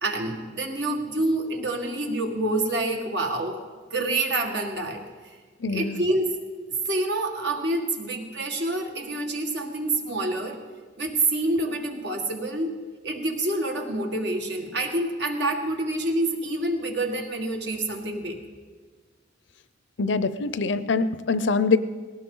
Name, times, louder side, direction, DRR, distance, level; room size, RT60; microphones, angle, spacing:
voice 1, 0.0-3.6 3.9-5.4 5.7-6.4 6.9-10.6 11.0-12.7 13.0-18.4, right 2 dB, 65° right, 3 dB, 1.9 m, -27 dB
voice 2, 5.6-6.0 20.0-21.8, left 4 dB, 70° left, 13 dB, 0.6 m, -24 dB
19.0 x 17.5 x 3.9 m, 1.5 s
head